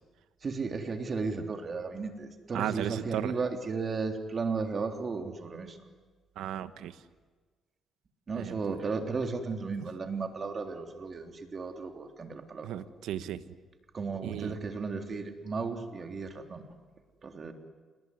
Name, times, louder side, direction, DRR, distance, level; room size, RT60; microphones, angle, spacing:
voice 1, 0.4-5.8 8.3-12.8 13.9-16.7 17.2-17.5, right 4 dB, 40° right, 4 dB, 3.5 m, -34 dB
voice 2, 2.5-3.3 6.4-6.9 8.3-8.6 12.6-13.4 14.2-14.6, right 11 dB, 85° right, 12 dB, 1.3 m, -35 dB
28.5 x 20.5 x 9.9 m, 1.4 s
cardioid pair, 90°, 0 cm